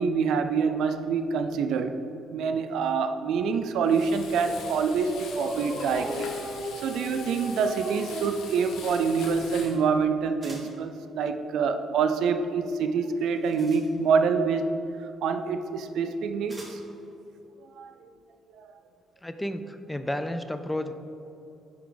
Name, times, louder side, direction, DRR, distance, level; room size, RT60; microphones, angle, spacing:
voice 1, 0.0-1.9 2.3-6.3 6.8-14.7 15.2-16.8 17.8-17.9 18.6-18.7, right 5 dB, 80° right, 8 dB, 0.4 m, -26 dB
Frying (food), 3.9-9.8, left 4 dB, 85° left, 0.8 m, -43 dB
Dog, 4.1-9.8, equal, 35° right, 1.3 m, -37 dB
sound 1, 5.8-6.6 10.4-10.9 13.1-14.3 15.4-15.5 16.5-17.0, right 1 dB, 15° right, 1.2 m, -49 dB
voice 2, 19.2-20.9, left 1 dB, 10° left, 9 dB, 0.3 m, -32 dB
9.5 x 3.5 x 3.8 m, 2.9 s
cardioid pair, 115°, 0 cm